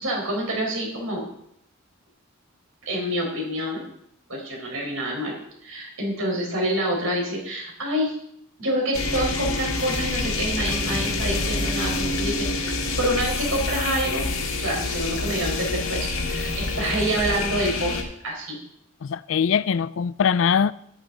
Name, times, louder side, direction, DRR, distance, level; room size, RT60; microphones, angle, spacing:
voice 1, 0.0-1.3 2.8-3.8 4.3-8.1 8.6-18.0 18.2-18.6, right 1 dB, 75° right, 4.5 m, -27 dB
sound 1, 8.9-18.0, left 3 dB, 85° left, 1.9 m, -27 dB
voice 2, 19.0-20.7, left 7 dB, 65° left, 0.4 m, -22 dB
13.0 x 11.5 x 3.9 m
head